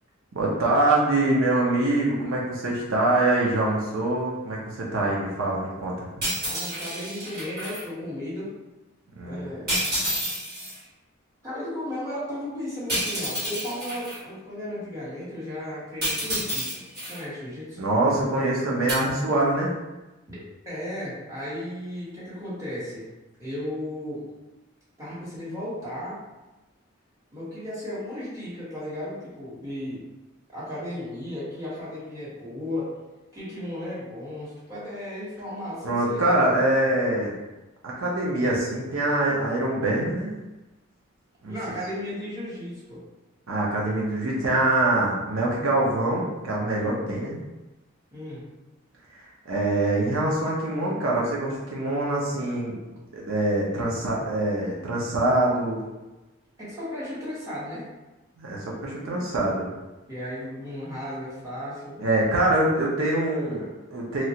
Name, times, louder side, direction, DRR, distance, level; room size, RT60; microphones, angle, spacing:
voice 1, 0.3-6.0 9.2-9.5 17.8-19.8 35.8-37.3 37.8-40.4 41.4-41.5 43.5-47.4 49.1-52.8 53.1-55.8 58.4-59.7 62.0-64.2, right 2 dB, 80° right, -3 dB, 0.7 m, -24 dB
sound 1, 6.2-7.8 9.7-10.8 12.9-14.2 16.0-17.2 18.9-19.0, equal, 45° right, 1.4 m, -29 dB
voice 2, 6.4-8.5 9.2-9.7 11.4-17.8 20.3-20.4 20.6-23.1 23.4-24.2 25.0-26.2 27.3-30.0 30.5-32.9 33.3-36.6 41.5-43.0 48.1-48.4 56.6-57.8 60.1-62.0, left 1 dB, 15° right, -10 dB, 1.2 m, -35 dB
3.1 x 2.4 x 2.8 m, 1.1 s
head